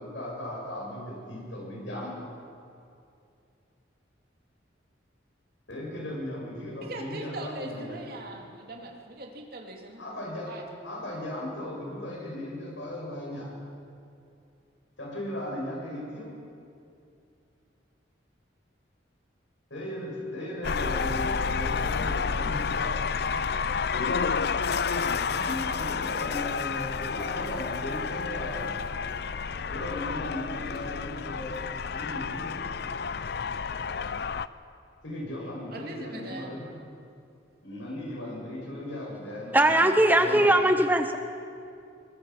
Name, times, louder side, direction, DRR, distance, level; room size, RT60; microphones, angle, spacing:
voice 1, 0.0-2.2 5.7-8.0 10.0-10.5 10.8-13.5 15.0-16.3 19.7-22.9 25.3-28.7 29.7-32.6 35.0-36.7 37.6-40.7, left 1 dB, 80° left, -3 dB, 6.9 m, -37 dB
voice 2, 6.8-10.0 10.4-10.6 35.7-36.6, right 2 dB, 50° right, 1 dB, 2.8 m, -40 dB
sound 1, 20.6-34.5, left 5 dB, 55° left, 0.5 m, -30 dB
voice 3, 39.5-41.2, right 1 dB, 10° right, 7 dB, 0.8 m, -20 dB
23.0 x 21.0 x 5.8 m, 2.5 s
head